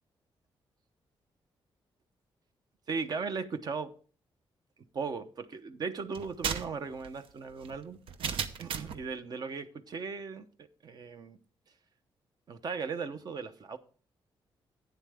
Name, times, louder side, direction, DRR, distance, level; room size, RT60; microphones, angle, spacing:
voice 1, 2.9-3.9 4.9-8.0 8.6-11.4 12.5-13.8, right 5 dB, 45° right, 10 dB, 0.8 m, -37 dB
sound 1, 6.1-9.1, right 7 dB, 75° right, 0.8 m, -36 dB
11.0 x 9.4 x 3.4 m, 0.39 s
wide cardioid pair, 150°, 9 cm